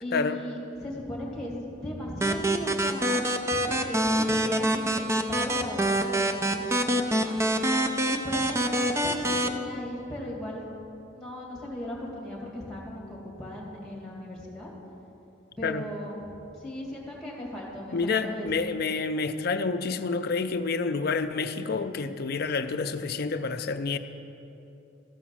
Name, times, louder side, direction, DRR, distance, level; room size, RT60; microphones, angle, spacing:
voice 1, 0.0-3.2 3.5-7.4 8.1-10.6 11.1-14.7 15.6-16.2 16.6-18.7, left 1 dB, ahead, -3 dB, 2.1 m, -37 dB
sound 1, 2.2-9.5, right 1 dB, 15° right, 0.4 m, -26 dB
voice 2, 17.9-24.0, left 4 dB, 50° left, 9 dB, 0.5 m, -28 dB
14.0 x 5.0 x 7.2 m, 2.8 s
head